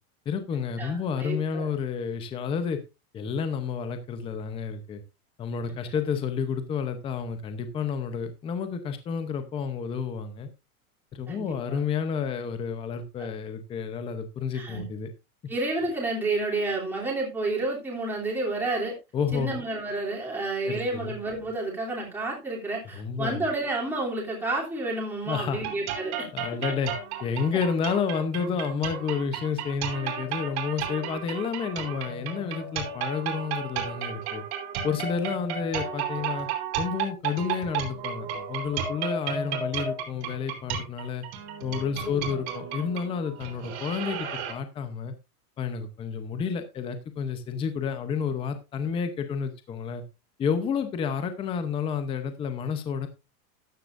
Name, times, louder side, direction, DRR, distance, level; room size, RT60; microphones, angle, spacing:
voice 1, 0.3-2.8 3.1-5.0 5.4-10.5 11.1-15.1 19.1-19.5 20.6-21.2 22.9-23.4 25.3-25.6 26.3-26.9 27.2-34.4 34.8-36.5 36.8-41.2 41.6-45.1 45.6-50.0 50.4-53.1, left 6 dB, 10° left, 9 dB, 0.8 m, -30 dB
voice 2, 0.8-1.7 11.3-11.4 11.7-11.8 14.5-14.8 15.5-19.0 19.3-26.3 27.5-27.6 42.0-42.4, right 2 dB, 5° right, -4 dB, 3.1 m, -30 dB
sound 1, 25.6-44.5, right 7 dB, 45° right, 3.5 m, -33 dB
13.5 x 9.8 x 2.6 m, 0.25 s
supercardioid pair, 170°, 44 cm